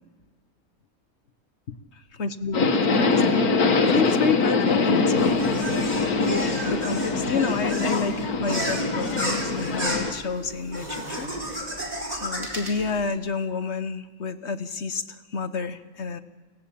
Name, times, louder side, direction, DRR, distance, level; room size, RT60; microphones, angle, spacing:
voice 1, 2.2-5.6 6.2-11.3 12.1-16.2, left 5 dB, 50° left, 11 dB, 1.4 m, -29 dB
Subway metro underground, 2.5-10.1, left 3 dB, 90° left, 2.1 m, -23 dB
sound 1, 5.2-13.1, equal, 25° right, 4.5 m, -33 dB
29.5 x 18.5 x 8.6 m, 1.3 s
omnidirectional pair, 1.5 m